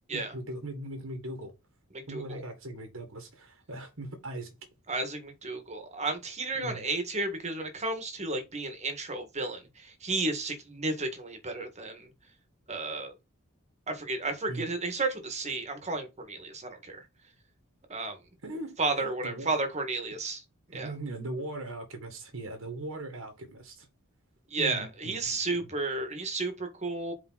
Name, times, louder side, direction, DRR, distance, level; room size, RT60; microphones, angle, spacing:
voice 1, 0.1-1.5 2.1-4.5 6.5-6.8 14.5-14.7 18.4-19.5 20.7-23.9 24.6-25.4, right 1 dB, 65° right, 1.7 m, -39 dB
voice 2, 1.9-2.4 4.9-12.1 12.7-13.1 13.9-17.0 17.9-18.2 18.8-20.4 20.7-20.9 24.5-27.1, right 3 dB, 30° right, 1.7 m, -33 dB
4.9 x 4.9 x 4.0 m
head